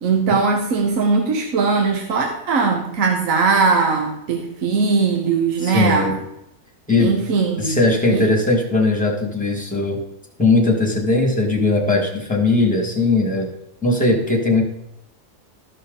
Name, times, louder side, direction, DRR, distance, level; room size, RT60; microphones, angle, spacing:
voice 1, 0.0-6.2 7.0-7.8 8.1-8.3, right 4 dB, 60° right, 2 dB, 1.3 m, -19 dB
voice 2, 5.6-6.2 6.9-7.1 7.6-10.0 10.4-13.5 13.8-14.6, left 2 dB, 5° left, -1 dB, 1.8 m, -19 dB
13.5 x 5.7 x 3.9 m, 0.83 s
omnidirectional pair, 1.6 m